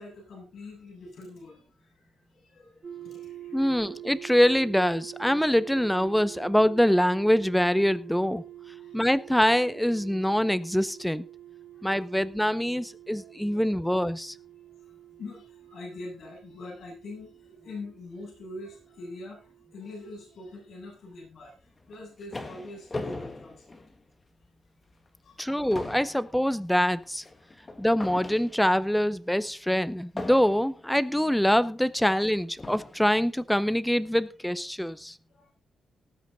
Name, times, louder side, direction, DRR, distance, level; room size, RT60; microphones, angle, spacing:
voice 1, 0.0-3.9 8.8-9.0 11.7-12.0 13.1-13.7 14.8-23.8 25.2-25.6 26.1-26.2 35.3-35.5, left 2 dB, 60° left, 7.7 m, -44 dB
sound 1, 2.8-20.8, right 12 dB, 40° right, 6.4 m, -47 dB
voice 2, 3.5-8.4 8.9-11.2 11.8-14.3 25.4-27.2 27.8-35.1, equal, 5° left, 0.7 m, -24 dB
sound 2, 21.8-24.5 24.9-25.1 25.4-28.9 30.2-30.9 31.8-31.9 32.6-33.1, left 2 dB, 20° left, 1.8 m, -40 dB
19.0 x 8.1 x 4.0 m
wide cardioid pair, 160°, 0 cm